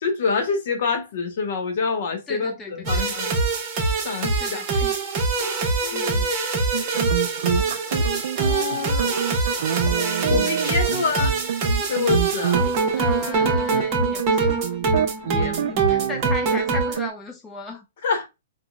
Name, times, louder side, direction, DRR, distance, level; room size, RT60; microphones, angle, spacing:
voice 1, 0.0-3.3 4.0-4.7 5.8-6.3 8.4-9.1 10.3-11.3 11.9-12.7 15.2-15.6 18.0-18.3, left 5 dB, 60° left, 1.0 m, -26 dB
voice 2, 2.3-3.1 4.4-5.0 5.9-6.3 13.0-14.6 15.6-17.8, left 3 dB, 15° left, 0.6 m, -36 dB
sound 1, 2.9-17.0, right 4 dB, 30° right, 0.9 m, -23 dB
sound 2, 6.7-17.1, right 9 dB, 65° right, 0.3 m, -28 dB
3.8 x 2.2 x 2.2 m
hypercardioid pair, 140°, 0 cm